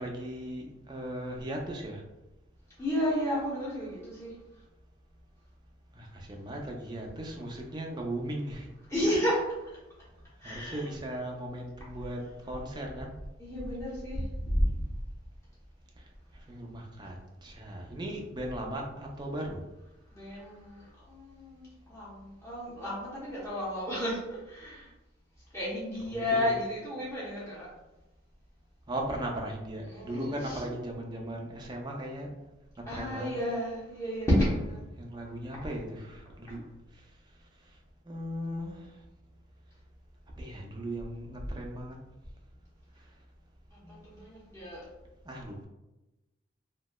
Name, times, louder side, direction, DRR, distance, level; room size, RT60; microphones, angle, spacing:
voice 1, 0.0-2.0 5.9-8.7 9.0-9.2 10.4-12.2 12.5-13.1 16.5-17.2 17.4-19.6 26.1-26.5 28.9-32.3 32.9-33.3 35.0-36.6 38.1-38.9 40.4-42.0 43.8-44.0 45.3-45.7, right 1 dB, 20° right, 0 dB, 0.4 m, -37 dB
voice 2, 2.8-4.3 8.8-9.7 10.4-10.9 13.4-14.7 20.1-24.9 25.5-27.7 29.9-30.7 32.9-34.8 36.5-36.6 43.7-44.9, equal, 15° left, -8 dB, 0.8 m, -32 dB
3.0 x 2.8 x 2.2 m, 1.0 s
head